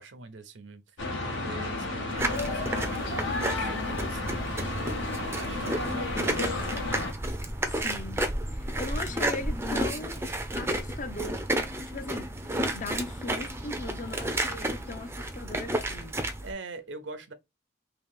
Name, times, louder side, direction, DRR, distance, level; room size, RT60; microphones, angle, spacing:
voice 1, 0.0-4.8 5.1-6.8 16.4-17.3, right 3 dB, 70° right, 0.7 m, -43 dB
sound 1, 1.0-7.1, left 2 dB, 75° left, 0.9 m, -32 dB
sound 2, 2.2-16.5, right 1 dB, 15° right, 0.4 m, -32 dB
voice 2, 7.6-10.2 10.6-11.5 11.9-16.1, left 2 dB, 40° left, 0.5 m, -39 dB
2.9 x 2.8 x 3.5 m
head